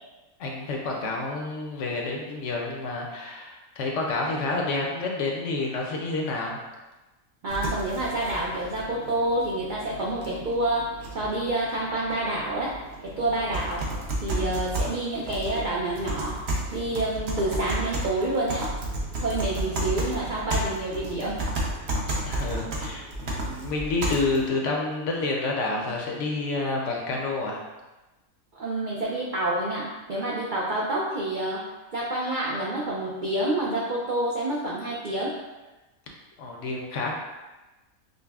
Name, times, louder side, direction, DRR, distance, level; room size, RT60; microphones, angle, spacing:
voice 1, 0.4-6.6 22.2-27.6 36.4-37.1, left 3 dB, 70° left, -1 dB, 0.8 m, -29 dB
voice 2, 7.4-10.8 11.1-12.7 13.0-13.8 14.2-16.4 16.7-18.7 19.2-21.5 28.5-31.6 31.9-35.3, right 1 dB, 75° right, -4 dB, 0.4 m, -28 dB
sound 1, 7.5-24.5, right 1 dB, 60° right, 0.8 m, -32 dB
5.2 x 2.0 x 2.3 m, 1.1 s
omnidirectional pair, 1.5 m